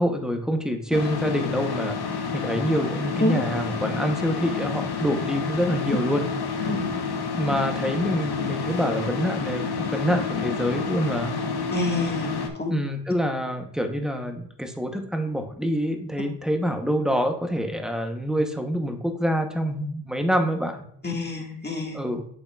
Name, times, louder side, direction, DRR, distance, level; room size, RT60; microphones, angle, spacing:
voice 1, 0.0-2.0 2.3-6.3 7.4-11.3 12.7-20.8 21.9-22.3, equal, ahead, 5 dB, 0.8 m, -26 dB
sound 1, 0.9-12.5, left 5 dB, 65° left, 1.0 m, -29 dB
voice 2, 11.7-12.7 21.0-22.0, left 2 dB, 25° left, 1 dB, 1.5 m, -27 dB
7.9 x 7.2 x 2.3 m, 0.66 s
wide cardioid pair, 110°, 41 cm